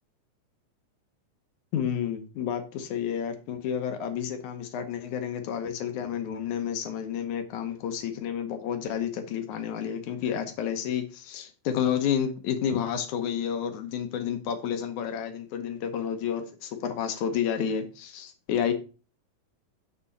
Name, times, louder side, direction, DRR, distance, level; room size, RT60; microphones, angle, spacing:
voice 1, 1.7-18.7, left 8 dB, 70° left, 7 dB, 2.4 m, -30 dB
7.3 x 6.1 x 4.1 m, 0.35 s
omnidirectional pair, 3.7 m